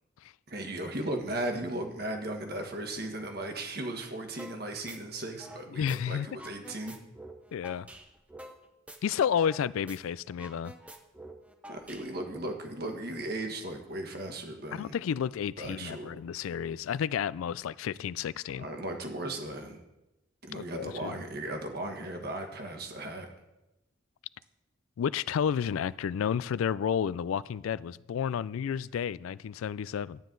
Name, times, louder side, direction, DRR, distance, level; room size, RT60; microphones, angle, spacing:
voice 1, 0.5-7.0 11.7-14.9 15.6-16.1 18.6-19.8 20.4-23.3, right 1 dB, 50° right, 4 dB, 1.5 m, -36 dB
sound 1, 4.4-4.6 4.9-6.0 6.3-9.6 9.9-10.0 10.3-12.4, right 1 dB, 5° right, 0.6 m, -48 dB
voice 2, 5.7-6.3 7.5-7.9 9.0-10.7 14.7-18.7 20.5-21.1 25.0-30.2, left 8 dB, 85° left, 19 dB, 0.3 m, -31 dB
12.0 x 9.3 x 3.9 m, 0.96 s
head